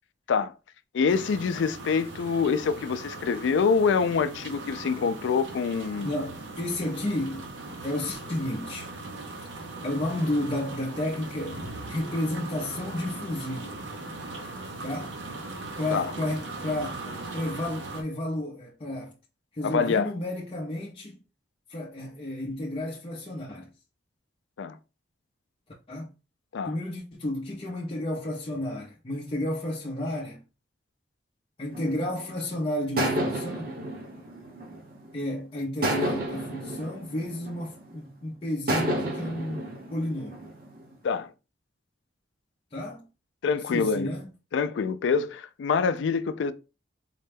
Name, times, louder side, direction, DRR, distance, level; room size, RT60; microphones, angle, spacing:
voice 1, 0.9-6.1 15.9-16.1 19.6-20.1 24.6-24.8 26.5-26.7 41.0-41.3 43.4-44.1 44.5-46.5, left 5 dB, 80° left, 0.3 m, -25 dB
sound 1, 1.1-18.0, right 2 dB, 85° right, 0.8 m, -39 dB
voice 2, 6.0-7.5 7.8-8.9 9.8-13.8 14.8-15.2 15.8-19.1 19.6-21.2 21.7-23.7 25.9-26.1 26.6-30.4 31.6-33.7 35.1-40.4 42.7-43.1 43.6-44.3, left 1 dB, 30° left, 0.5 m, -32 dB
sound 2, 31.7-32.4 33.0-35.2 35.8-38.1 38.7-40.9, right 1 dB, 50° right, 1.0 m, -31 dB
4.1 x 2.2 x 3.3 m
head